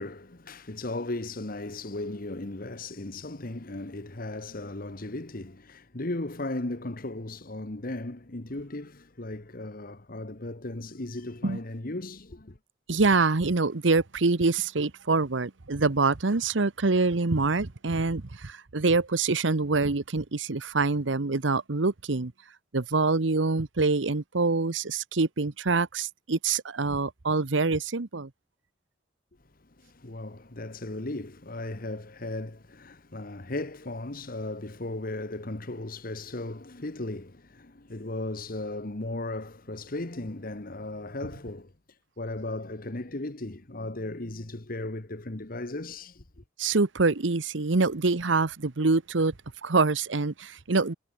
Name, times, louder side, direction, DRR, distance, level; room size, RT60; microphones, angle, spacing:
voice 1, 0.0-12.6 29.6-41.7 42.2-46.4, left 2 dB, 50° left, 1.5 m, -36 dB
voice 2, 12.9-22.3 22.7-28.3 46.6-49.3 49.6-50.9, right 3 dB, 85° right, 1.1 m, -25 dB
head